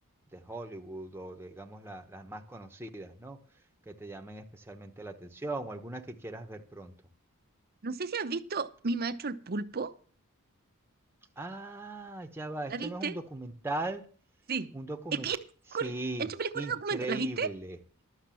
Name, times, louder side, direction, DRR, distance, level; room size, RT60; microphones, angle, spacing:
voice 1, 0.3-3.4 3.9-6.9 11.4-14.0 14.7-15.3 15.8-16.3 16.5-17.8, right 2 dB, 10° right, 4 dB, 1.0 m, -39 dB
voice 2, 7.8-9.9 12.7-13.1 14.5-14.7 15.1-15.4 15.7-15.9 16.2-17.5, right 4 dB, 45° right, 10 dB, 0.8 m, -33 dB
12.0 x 6.5 x 7.6 m, 0.43 s
head